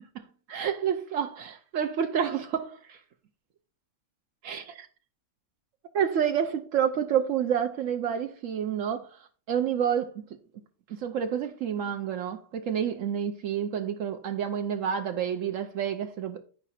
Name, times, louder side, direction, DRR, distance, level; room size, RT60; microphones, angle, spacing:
voice 1, 0.1-3.0 4.4-4.9 5.9-9.2 9.5-10.2 10.9-16.4, right 8 dB, 75° right, 1.0 m, -29 dB
10.0 x 4.8 x 4.2 m
omnidirectional pair, 1.4 m